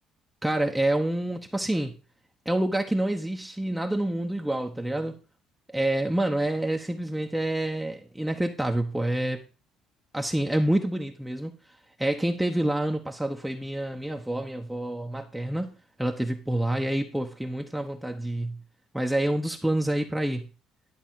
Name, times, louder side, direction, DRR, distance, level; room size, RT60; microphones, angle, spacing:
voice 1, 0.4-1.9 2.5-5.2 5.7-9.4 10.1-11.5 12.0-15.7 16.0-18.6 18.9-20.5, right 1 dB, 5° right, 3 dB, 1.0 m, -27 dB
11.5 x 3.9 x 7.4 m, 0.34 s
cardioid pair, 95°, 0 cm